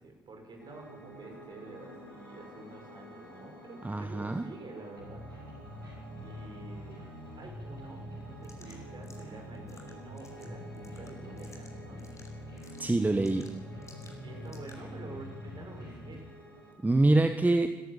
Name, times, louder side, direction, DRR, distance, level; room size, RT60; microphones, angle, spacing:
voice 1, 0.0-5.6 6.2-7.0 7.3-12.1 14.2-16.3, right 2 dB, 40° right, 3 dB, 6.2 m, -48 dB
Piano, 0.6-16.7, equal, 90° left, 3.5 m, -51 dB
voice 2, 3.8-4.4 12.8-13.5 16.8-17.7, right 2 dB, 15° right, 8 dB, 1.2 m, -25 dB
sound 1, 5.0-16.1, equal, 85° right, 4.9 m, -45 dB
sound 2, 8.4-15.0, left 3 dB, 25° left, 5.0 m, -58 dB
26.5 x 13.0 x 7.7 m, 1.2 s
figure-of-eight pair, 45°, 12 cm